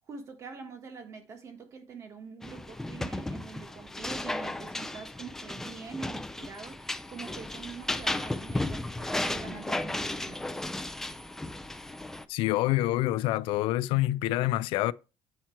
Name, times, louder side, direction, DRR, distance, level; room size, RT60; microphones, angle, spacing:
voice 1, 0.1-10.5, right 5 dB, 35° right, 1.4 m, -44 dB
sound 1, 2.4-12.3, left 2 dB, 5° left, 0.3 m, -35 dB
voice 2, 12.3-14.9, left 16 dB, 85° left, 0.4 m, -26 dB
9.0 x 4.4 x 4.4 m
cardioid pair, 175°, 9 cm